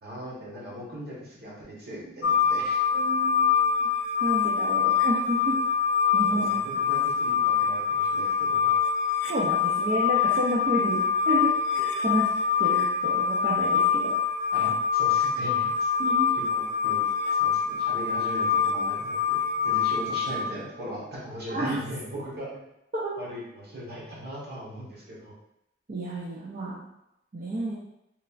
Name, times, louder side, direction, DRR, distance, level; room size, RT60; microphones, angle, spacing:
voice 1, 0.0-2.8 6.3-8.7 14.5-15.9 16.8-17.0 17.4-22.5 23.2-25.3, equal, 55° right, -5 dB, 1.0 m, -39 dB
sound 1, 2.2-20.5, left 6 dB, 65° left, 0.3 m, -25 dB
voice 2, 2.9-3.5 3.8-3.9 4.2-5.6 6.1-6.7 9.3-11.5 11.8-12.3 12.6-14.2 16.0-16.3 21.5-21.8 22.9-23.1 25.9-26.8 27.3-27.7, right 1 dB, 40° right, -7 dB, 0.5 m, -30 dB
3.1 x 2.4 x 2.3 m, 0.84 s
head